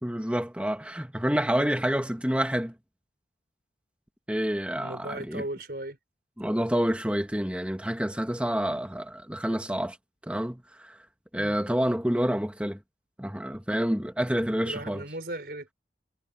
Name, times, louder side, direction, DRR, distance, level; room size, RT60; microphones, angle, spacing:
voice 1, 0.0-2.7 4.3-5.4 6.4-10.0 10.3-11.0 11.3-12.8 13.2-15.0, equal, 5° right, 1.7 m, -28 dB
voice 2, 4.7-6.0 11.4-11.6 14.6-15.7, right 1 dB, 60° right, 5.0 m, -37 dB
head